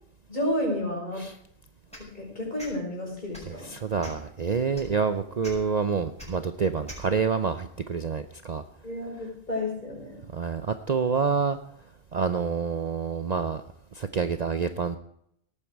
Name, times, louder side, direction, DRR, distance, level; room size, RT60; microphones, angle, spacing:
voice 1, 0.3-1.3 2.0-3.7 8.8-10.2, left 1 dB, 40° left, -1 dB, 5.9 m, -31 dB
sound 1, 1.9-2.1 2.6-2.7 3.3-3.5 4.0-4.3 4.7-4.9 5.4-5.5 6.2-6.3 6.9-7.0, equal, 5° left, 6.0 m, -42 dB
voice 2, 3.5-8.6 10.3-11.6 12.1-13.6 13.9-15.0, right 5 dB, 45° right, 10 dB, 0.7 m, -27 dB
18.0 x 9.0 x 4.6 m, 0.71 s
omnidirectional pair, 1.2 m